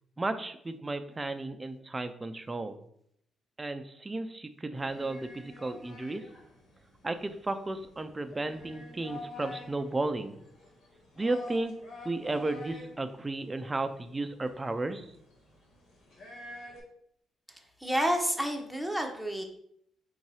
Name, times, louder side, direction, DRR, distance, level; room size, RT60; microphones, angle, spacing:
voice 1, 0.2-2.8 3.6-6.2 7.0-10.3 11.2-11.7 12.0-15.0, right 2 dB, 20° right, 8 dB, 0.4 m, -34 dB
sound 1, 4.8-16.8, left 2 dB, 80° left, 1.3 m, -48 dB
voice 2, 17.5-19.4, equal, 5° left, 3 dB, 0.8 m, -30 dB
3.8 x 2.7 x 4.7 m, 0.71 s
cardioid pair, 90°, 0 cm